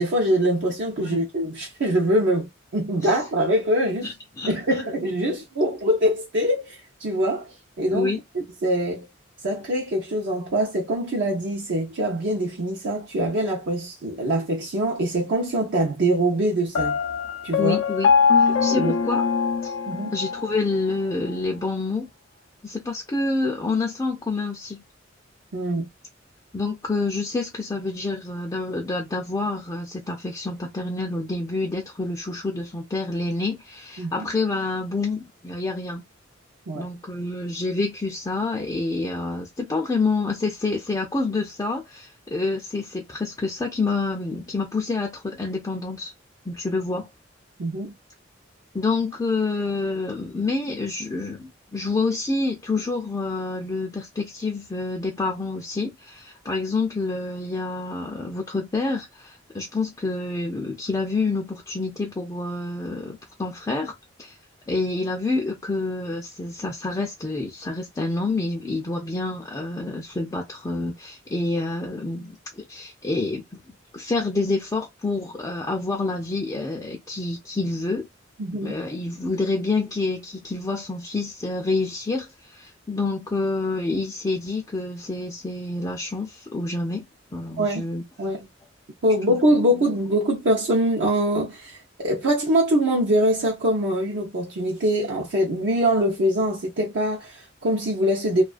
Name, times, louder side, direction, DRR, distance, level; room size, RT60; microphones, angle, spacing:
voice 1, 0.0-4.1 4.5-9.1 9.4-17.0 17.4-17.8 18.7-18.9 19.9-20.2 25.5-25.9 34.0-34.3 36.7-36.9 47.6-47.9 78.4-78.8 87.6-87.9 88.2-88.5 89.0-98.4, right 1 dB, 65° right, 0.6 m, -23 dB
voice 2, 4.0-4.5 7.9-8.2 17.6-18.1 18.4-19.2 19.6-19.7 20.1-22.1 22.6-24.8 26.5-36.0 36.7-46.1 46.5-47.1 48.7-63.9 64.2-64.4 64.7-78.1 78.6-87.1 87.3-88.0 89.3-89.4, left 3 dB, 20° left, 0.4 m, -28 dB
Piano, 16.8-20.6, left 6 dB, 85° left, 0.4 m, -22 dB
2.3 x 2.2 x 2.4 m
head